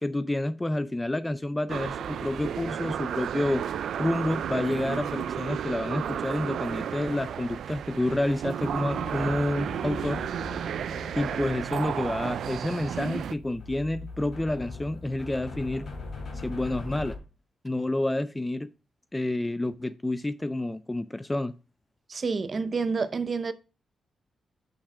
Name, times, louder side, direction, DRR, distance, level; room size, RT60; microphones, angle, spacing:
voice 1, 0.0-3.6 4.0-10.2 11.2-15.9 16.4-17.2 17.6-18.7 19.1-21.5, left 1 dB, 10° left, 0.3 m, -29 dB
sound 1, 1.7-13.4, right 9 dB, 70° right, 0.3 m, -33 dB
sound 2, 8.6-17.2, left 3 dB, 45° left, 2.9 m, -41 dB
voice 2, 22.1-23.5, right 4 dB, 35° right, 0.7 m, -28 dB
6.5 x 5.9 x 4.8 m
wide cardioid pair, 160°, 0 cm